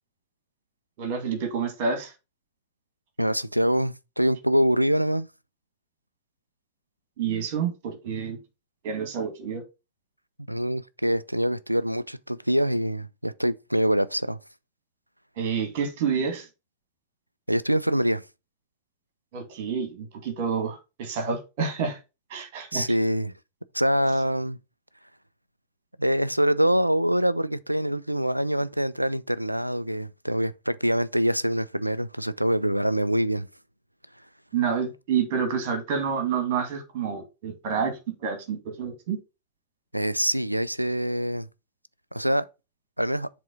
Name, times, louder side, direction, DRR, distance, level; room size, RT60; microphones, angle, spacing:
voice 1, 1.0-2.1 7.2-8.4 8.8-9.6 15.4-16.5 19.3-22.0 22.3-22.9 34.5-39.2, right 6 dB, 50° right, 2.3 m, -28 dB
voice 2, 3.2-5.3 10.5-14.4 17.5-18.2 22.7-23.3 23.7-24.6 26.0-33.5 39.9-41.5 42.1-42.5 43.0-43.3, equal, 90° right, 0.4 m, -25 dB
7.6 x 3.6 x 5.2 m
figure-of-eight pair, 90°, 0 cm